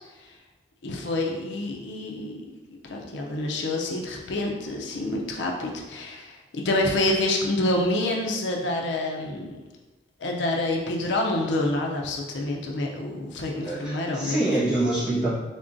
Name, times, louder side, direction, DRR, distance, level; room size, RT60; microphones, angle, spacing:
voice 1, 0.8-2.6 2.9-9.6 10.2-14.4, left 2 dB, 80° left, 0 dB, 0.5 m, -27 dB
voice 2, 13.6-15.3, right 2 dB, 5° right, -11 dB, 1.2 m, -25 dB
3.6 x 3.6 x 2.6 m, 1.2 s
head